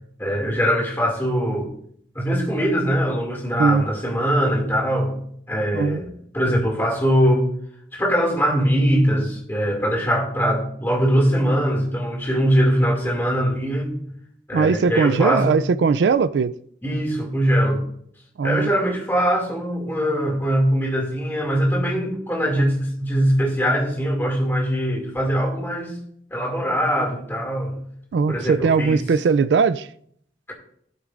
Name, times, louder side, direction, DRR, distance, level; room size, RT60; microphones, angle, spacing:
voice 1, 0.2-1.7 2.1-5.1 5.5-7.5 7.9-14.0 14.5-15.6 16.8-17.8 18.4-25.9 26.3-27.8 28.3-29.0, equal, 15° left, 2.3 m, -22 dB
voice 2, 14.5-16.5 18.4-18.7 28.1-29.9, right 5 dB, 85° right, 0.3 m, -19 dB
14.5 x 8.4 x 2.5 m
head